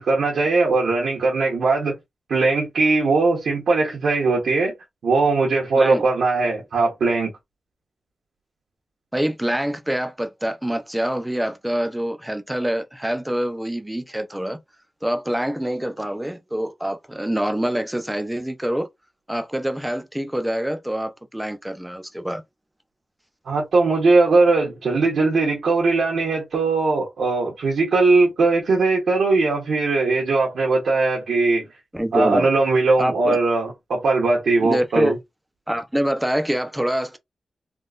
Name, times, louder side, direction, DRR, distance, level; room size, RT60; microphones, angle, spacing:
voice 1, 0.0-1.9 2.3-4.7 5.0-7.3 23.5-31.6 32.1-35.2, right 3 dB, 90° right, 1.1 m, -20 dB
voice 2, 9.1-14.6 15.0-18.9 19.3-22.4 31.9-32.5 33.0-33.4 34.6-35.1 35.7-37.2, right 1 dB, 5° right, 0.5 m, -25 dB
3.6 x 2.3 x 2.5 m
wide cardioid pair, 120°, 0 cm